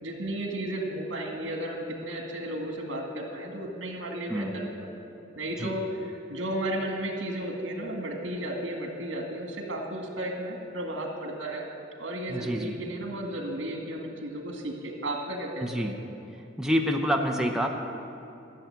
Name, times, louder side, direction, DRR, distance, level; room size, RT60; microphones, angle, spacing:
voice 1, 0.0-4.7 5.4-11.7 12.0-15.9, right 1 dB, 80° right, 2 dB, 2.2 m, -34 dB
voice 2, 4.3-4.7 5.6-5.7 12.3-12.8 15.6-15.9 16.6-17.7, equal, 5° right, 2 dB, 0.7 m, -27 dB
13.5 x 7.2 x 9.4 m, 2.9 s
head